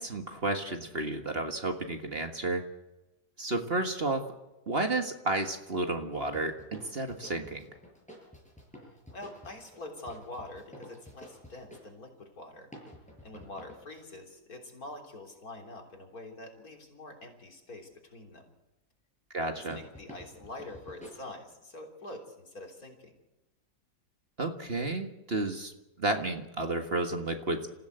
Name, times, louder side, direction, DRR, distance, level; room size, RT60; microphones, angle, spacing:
voice 1, 0.0-2.7 3.4-4.3 4.7-7.7 19.3-19.8 24.4-25.7 26.0-27.7, right 2 dB, 40° right, 5 dB, 1.8 m, -32 dB
sound 1, 6.1-11.9 12.7-13.9 19.7-21.1, equal, 5° left, 6.9 m, -50 dB
voice 2, 8.8-12.7 13.2-18.5 19.5-23.1, left 2 dB, 65° left, 2 dB, 3.9 m, -45 dB
27.0 x 15.5 x 8.0 m, 1.0 s
omnidirectional pair, 1.7 m